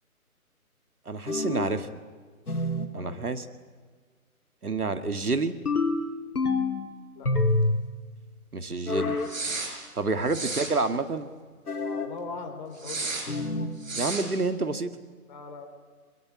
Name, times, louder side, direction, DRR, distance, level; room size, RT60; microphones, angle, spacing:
voice 1, 1.1-1.9 2.9-3.5 4.6-5.5 8.5-9.2 10.0-11.3 14.0-14.9, right 3 dB, 75° right, 9 dB, 2.0 m, -28 dB
sound 1, 1.3-1.8 2.5-3.0 5.7-6.8 7.2-7.9 8.9-9.4 11.7-12.2 13.3-13.8, left 2 dB, 80° left, 2.9 m, -27 dB
sound 2, 9.2-9.7 10.3-10.7 12.8-13.3 13.8-14.3, right 3 dB, 60° right, 5.9 m, -32 dB
voice 2, 11.8-13.1 15.3-15.7, left 4 dB, 30° left, 4 dB, 3.5 m, -40 dB
23.0 x 22.0 x 9.6 m, 1.5 s
figure-of-eight pair, 150°, 44 cm